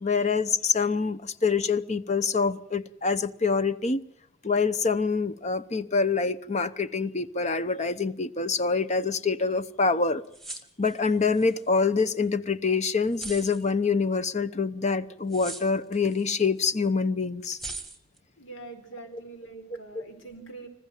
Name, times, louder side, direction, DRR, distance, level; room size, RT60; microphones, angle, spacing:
voice 1, 0.0-4.0 4.4-10.2 10.8-17.6 19.1-19.2 19.7-19.8, left 4 dB, 35° left, 0.8 m, -26 dB
sound 1, 10.2-11.6 12.0-12.1 13.1-13.7 15.3-16.2 16.6-16.7 17.5-18.2, right 2 dB, ahead, 1.6 m, -40 dB
voice 2, 18.4-20.7, right 3 dB, 75° left, 4.4 m, -44 dB
26.5 x 15.0 x 9.1 m
head